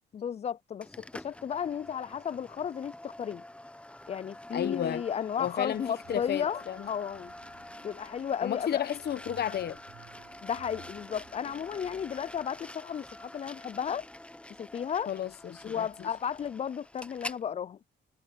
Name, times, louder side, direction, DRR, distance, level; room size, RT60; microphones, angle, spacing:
voice 1, 0.1-3.4 4.1-7.3 7.8-8.9 10.4-14.1 14.6-15.1 15.6-17.8, left 8 dB, 35° left, 0.4 m, -34 dB
sound 1, 0.8-17.4, left 1 dB, 5° left, 0.7 m, -47 dB
voice 2, 4.5-5.0 5.4-6.9 8.4-9.8 15.1-15.9, left 9 dB, 55° left, 1.0 m, -32 dB
sound 2, 6.0-12.2, right 13 dB, 85° right, 4.5 m, -57 dB
cardioid pair, 90°, 20 cm